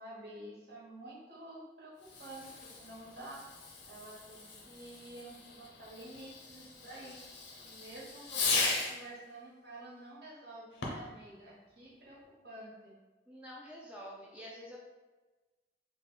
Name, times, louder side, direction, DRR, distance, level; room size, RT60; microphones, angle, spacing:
voice 1, 0.0-3.4 3.9-7.2 7.6-13.0, right 1 dB, 60° right, -7 dB, 1.3 m, -49 dB
Fireworks, 2.0-9.1 10.7-11.2, left 3 dB, 85° left, 0.7 m, -38 dB
voice 2, 13.3-14.8, equal, 5° right, -4 dB, 0.4 m, -47 dB
3.5 x 2.3 x 3.8 m, 1.2 s
head